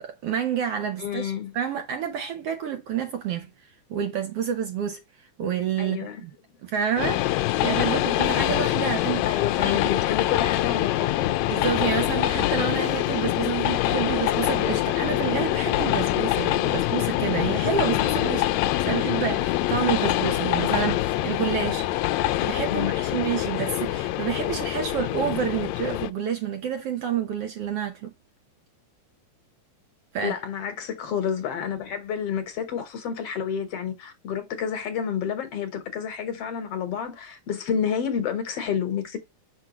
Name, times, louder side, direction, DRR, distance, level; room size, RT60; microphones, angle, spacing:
voice 1, 0.0-3.5 3.9-5.0 5.4-6.3 6.6-9.4 9.6-9.8 11.5-18.5 18.8-28.1 30.1-30.4, right 8 dB, 65° right, 1.6 m, -29 dB
voice 2, 1.0-1.6 5.8-6.2 9.3-11.4 22.6-23.0 30.2-39.2, left 8 dB, 60° left, 1.9 m, -29 dB
Train, 7.0-26.1, left 15 dB, 80° left, 1.7 m, -25 dB
6.2 x 5.8 x 2.9 m
omnidirectional pair, 3.4 m